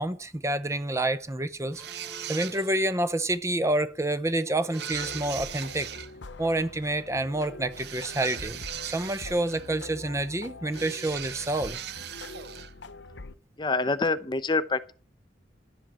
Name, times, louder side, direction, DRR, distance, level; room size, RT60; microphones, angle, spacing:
voice 1, 0.0-1.8 2.3-5.9 6.4-11.8, right 1 dB, 15° right, 0.6 m, -28 dB
sound 1, 1.7-2.9 4.7-6.1 7.7-9.8 10.7-12.7, right 10 dB, 60° right, 0.6 m, -39 dB
sound 2, 1.8-3.3 4.4-6.0, left 1 dB, 5° left, 2.8 m, -51 dB
sound 3, 4.9-13.3, left 3 dB, 75° left, 0.9 m, -44 dB
voice 2, 13.6-14.9, left 3 dB, 25° left, 0.7 m, -26 dB
11.0 x 7.8 x 7.4 m
head